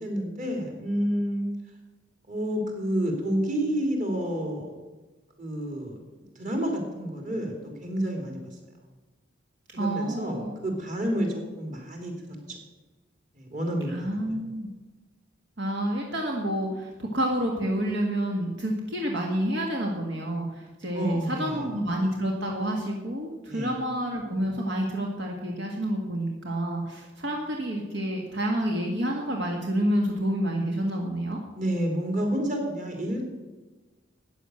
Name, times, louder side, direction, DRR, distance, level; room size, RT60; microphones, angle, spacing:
voice 1, 0.0-1.4 2.3-4.7 5.4-6.0 6.3-8.4 9.7-12.1 12.5-12.6 13.3-14.4 20.9-21.7 23.5-23.7 31.6-33.2, equal, 40° right, 2 dB, 3.2 m, -29 dB
voice 2, 9.8-10.6 13.9-14.7 15.6-31.4, right 1 dB, 70° right, 0 dB, 1.9 m, -29 dB
13.5 x 9.4 x 6.4 m, 1.2 s
head